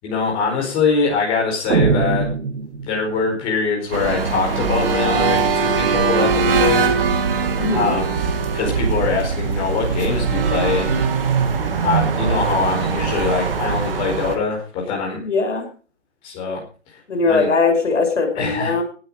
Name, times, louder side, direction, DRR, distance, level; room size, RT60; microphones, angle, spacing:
voice 1, 0.0-2.3 2.8-6.9 7.7-8.2 8.5-11.1 11.8-15.2 16.2-16.6 16.9-17.5 18.3-18.8, left 4 dB, 15° left, 0 dB, 4.6 m, -23 dB
sound 1, 1.7-3.3, right 5 dB, 70° right, 2.2 m, -21 dB
sound 2, 3.9-14.4, right 5 dB, 50° right, 2.7 m, -21 dB
voice 2, 7.6-7.9 15.2-15.6 17.1-18.8, left 4 dB, 75° left, 7 dB, 6.3 m, -19 dB
18.0 x 8.8 x 5.0 m, 0.38 s
hypercardioid pair, 165°, 36 cm